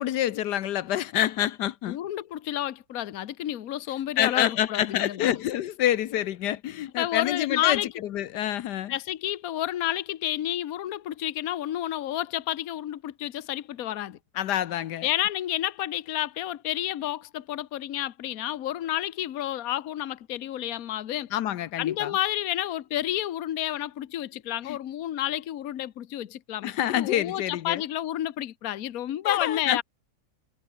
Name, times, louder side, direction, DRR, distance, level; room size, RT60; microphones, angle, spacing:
voice 1, 0.0-2.0 4.2-9.0 14.3-15.1 21.3-22.2 24.6-24.8 26.6-27.8 29.2-29.8, left 12 dB, 85° left, 1.4 m, -27 dB
voice 2, 1.9-5.3 7.0-7.9 8.9-14.2 15.0-21.3 21.8-29.8, left 12 dB, 65° left, 1.3 m, -30 dB
omnidirectional pair, 1.7 m